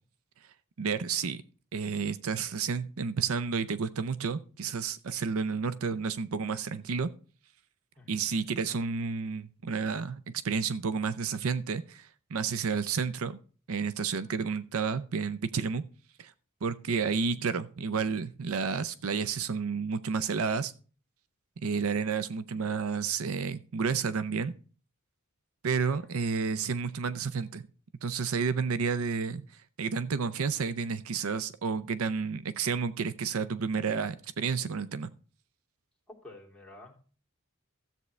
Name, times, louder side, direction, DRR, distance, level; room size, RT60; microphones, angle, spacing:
voice 1, 0.8-1.4 1.7-7.1 8.1-13.4 13.7-15.8 16.2-16.3 16.6-20.7 21.6-24.5 25.6-27.7 28.0-29.4 29.8-35.1, right 5 dB, 70° right, 14 dB, 0.5 m, -31 dB
voice 2, 8.0-8.4 25.9-26.0 36.1-37.2, left 2 dB, 5° left, -4 dB, 2.9 m, -51 dB
13.5 x 8.1 x 3.2 m, 0.39 s
head